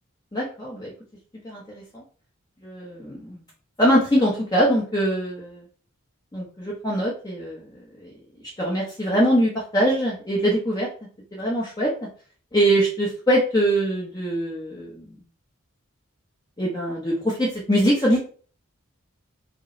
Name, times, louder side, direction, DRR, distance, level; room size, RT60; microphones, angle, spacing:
voice 1, 0.3-0.9 1.4-2.0 2.6-3.4 3.8-5.6 6.3-7.6 8.0-8.1 8.6-10.9 11.3-11.9 12.5-15.0 16.6-18.2, equal, 20° left, -4 dB, 0.8 m, -23 dB
5.0 x 2.0 x 4.3 m, 0.42 s
head